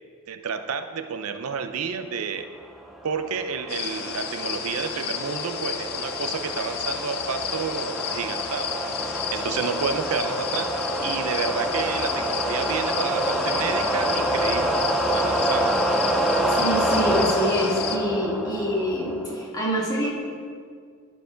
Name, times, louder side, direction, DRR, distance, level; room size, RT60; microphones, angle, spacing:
voice 1, 0.3-2.5 3.0-14.8 15.1-15.8, right 6 dB, 90° right, 9 dB, 0.5 m, -30 dB
sound 1, 3.0-19.5, right 1 dB, ahead, 0.4 m, -27 dB
sound 2, 3.7-18.0, left 8 dB, 50° left, 0.6 m, -32 dB
voice 2, 16.5-20.1, equal, 15° left, -5 dB, 1.8 m, -26 dB
11.5 x 4.7 x 5.0 m, 2.1 s
head